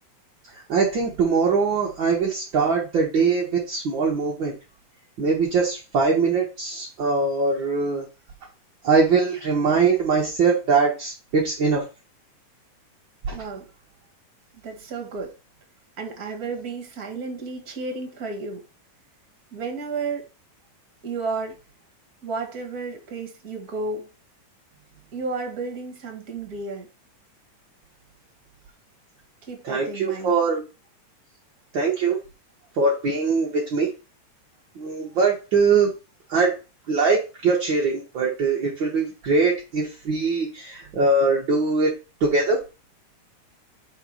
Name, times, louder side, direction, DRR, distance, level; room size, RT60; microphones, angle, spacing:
voice 1, 0.7-4.5 5.2-8.0 8.8-11.8 13.2-13.3 29.6-30.6 31.7-32.2 32.7-33.9 34.7-35.9 36.3-36.5 36.9-41.9 42.2-42.6, right 4 dB, 55° right, -2 dB, 1.4 m, -22 dB
voice 2, 13.3-13.7 14.5-15.3 16.0-18.7 19.5-20.3 21.0-21.6 22.2-24.1 25.1-26.9 29.4-30.3, right 4 dB, 35° right, 3 dB, 1.7 m, -32 dB
5.1 x 4.5 x 6.1 m, 0.31 s
omnidirectional pair, 3.7 m